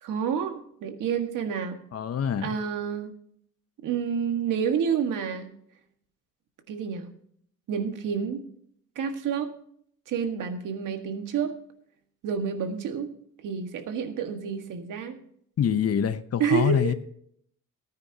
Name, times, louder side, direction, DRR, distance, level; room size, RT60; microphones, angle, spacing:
voice 1, 0.0-1.8 2.4-3.1 3.8-5.5 6.7-7.1 7.7-8.4 8.9-9.5 10.1-11.5 12.2-13.1 13.4-15.2 16.4-16.8, right 7 dB, 80° right, 1.8 m, -29 dB
voice 2, 1.9-2.5 15.6-16.9, left 8 dB, 50° left, 0.9 m, -25 dB
19.0 x 9.5 x 2.9 m
cardioid pair, 125°, 31 cm